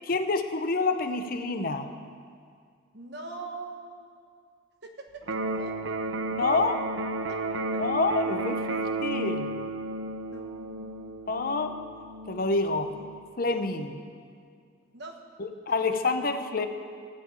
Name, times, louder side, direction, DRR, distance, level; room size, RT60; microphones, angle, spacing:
voice 1, 0.1-1.9 6.3-6.9 7.8-9.5 11.3-11.8 12.3-13.0 13.4-14.0 15.4-16.7, left 3 dB, 50° left, 8 dB, 0.7 m, -27 dB
voice 2, 2.9-4.1 4.8-5.0 5.5-5.8 7.3-7.4 10.3-10.9 14.9-15.2, right 3 dB, 60° right, 3 dB, 1.3 m, -41 dB
Electric guitar, 5.2-13.2, right 2 dB, 90° right, 0.8 m, -33 dB
15.0 x 5.2 x 8.7 m, 2.1 s
head